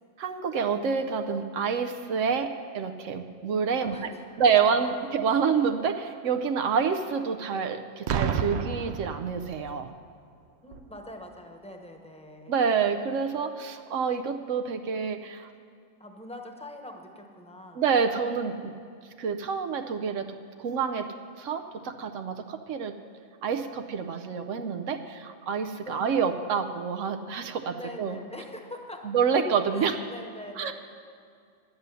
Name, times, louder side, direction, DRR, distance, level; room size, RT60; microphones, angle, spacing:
voice 1, 0.2-3.9 4.4-9.9 12.5-15.5 17.8-18.7 19.2-20.3 20.6-23.0 23.4-28.2 29.0-30.0 30.6-30.7, right 6 dB, 90° right, 6 dB, 1.0 m, -27 dB
voice 2, 3.8-4.4 10.6-12.6 16.0-17.8 25.8-26.3 27.7-29.0 29.7-30.7, left 1 dB, 5° left, 3 dB, 1.0 m, -43 dB
Boom, 8.1-9.8 10.7-11.0, right 7 dB, 65° right, 0.8 m, -30 dB
11.5 x 9.6 x 6.8 m, 2.3 s
omnidirectional pair, 1.3 m